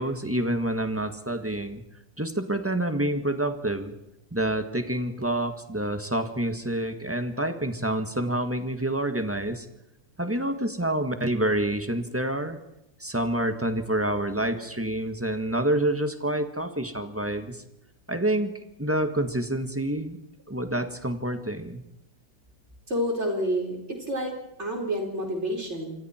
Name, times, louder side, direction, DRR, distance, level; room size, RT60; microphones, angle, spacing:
voice 1, 0.0-1.8 2.2-3.9 4.3-9.6 10.2-12.6 13.0-17.6 18.1-20.2 20.5-21.8, right 1 dB, 10° right, 7 dB, 1.5 m, -28 dB
voice 2, 22.9-24.3 24.6-25.9, equal, 35° right, 1 dB, 4.7 m, -29 dB
27.0 x 24.5 x 4.5 m, 0.86 s
omnidirectional pair, 2.0 m